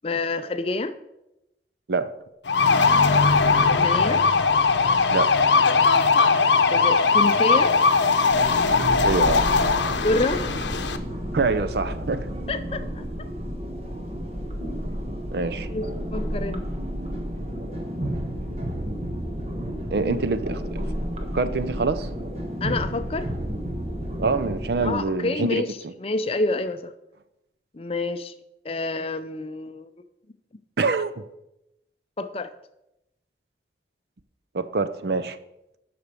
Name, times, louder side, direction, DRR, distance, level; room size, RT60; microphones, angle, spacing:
voice 1, 0.0-0.9 3.6-4.2 6.7-7.7 10.0-10.5 12.5-13.0 15.7-16.6 20.0-20.2 22.6-23.3 24.8-25.7 26.0-26.9 27.7-28.3 28.6-29.9 32.2-32.5, left 2 dB, 30° left, 11 dB, 0.5 m, -27 dB
sound 1, 2.5-11.0, left 4 dB, 80° left, 0.7 m, -19 dB
sound 2, 8.3-24.9, equal, 35° right, 1.3 m, -31 dB
voice 2, 8.8-9.5 11.3-12.3 15.3-15.7 19.9-20.8 21.3-22.1 24.2-25.9 30.8-31.1 34.5-35.4, right 4 dB, 60° right, 12 dB, 0.6 m, -25 dB
8.1 x 6.0 x 6.8 m, 0.88 s
head